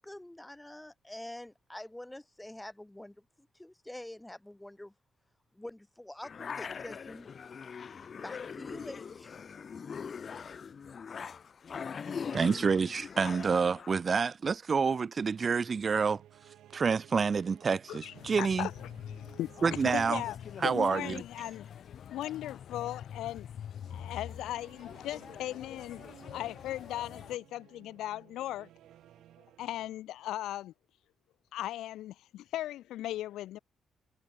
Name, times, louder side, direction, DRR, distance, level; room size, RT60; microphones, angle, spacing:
voice 1, 0.0-4.9 5.5-7.3 7.9-9.4, left 1 dB, 10° left, 6.2 m, -46 dB
sound 1, 6.2-13.9, left 6 dB, 45° left, 0.5 m, -41 dB
voice 2, 12.3-16.2 16.7-18.7 19.6-20.2 20.6-21.2, right 5 dB, 40° right, 0.8 m, -28 dB
sound 2, 15.3-29.9, right 12 dB, 80° right, 4.1 m, -59 dB
voice 3, 17.9-18.9 19.2-19.6 19.9-20.4 20.6-21.7 22.1-23.5 23.9-26.0 26.3-28.7 29.6-30.7 31.5-33.6, left 14 dB, 85° left, 0.6 m, -38 dB
sound 3, 18.1-27.4, left 9 dB, 60° left, 1.1 m, -45 dB
cardioid pair, 90°, 0 cm